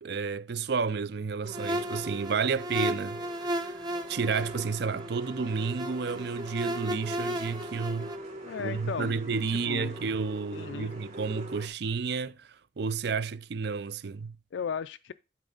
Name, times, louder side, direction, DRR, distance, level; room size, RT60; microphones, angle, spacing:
voice 1, 0.0-3.8 4.1-8.1 8.6-12.5 12.8-14.4, right 5 dB, 60° right, 0.5 m, -31 dB
sound 1, 1.4-11.7, equal, 35° right, 2.5 m, -43 dB
sound 2, 1.5-8.2, equal, 20° right, 1.0 m, -35 dB
voice 2, 8.4-9.1 9.5-10.0 10.5-11.0 14.5-15.1, left 6 dB, 65° left, 0.4 m, -35 dB
12.0 x 4.4 x 3.9 m
head